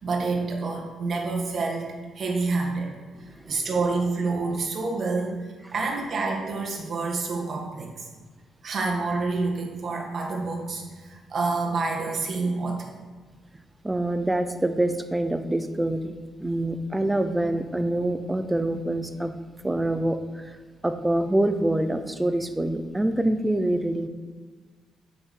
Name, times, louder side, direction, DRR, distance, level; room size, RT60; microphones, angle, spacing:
voice 1, 0.0-2.9 3.5-5.4 5.7-8.1 8.6-12.9, right 3 dB, 50° right, 1 dB, 1.6 m, -28 dB
voice 2, 3.2-3.6 13.8-16.1 16.4-19.3 19.6-20.6 20.8-24.1, right 1 dB, 10° right, 9 dB, 0.6 m, -25 dB
7.7 x 6.1 x 4.3 m, 1.5 s
cardioid pair, 90°, 0 cm